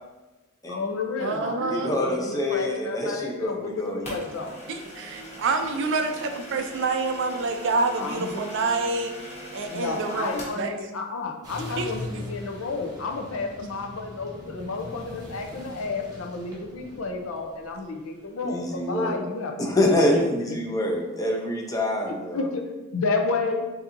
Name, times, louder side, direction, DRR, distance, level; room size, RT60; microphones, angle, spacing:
voice 1, 0.7-4.6 8.0-8.6 9.7-19.8 22.3-23.6, left 3 dB, 70° left, 3 dB, 0.6 m, -31 dB
voice 2, 1.2-1.9 4.7-10.7 11.8-11.9 12.1-12.2, right 3 dB, 60° right, 5 dB, 0.4 m, -27 dB
voice 3, 1.7-4.5 18.4-19.2 19.6-22.5, left 1 dB, 15° left, 0 dB, 0.6 m, -26 dB
sound 1, 4.0-10.6, left 1 dB, 30° left, 1.2 m, -41 dB
sound 2, 11.4-18.8, left 1 dB, 15° right, 1.0 m, -41 dB
6.9 x 2.7 x 2.6 m, 1.1 s
head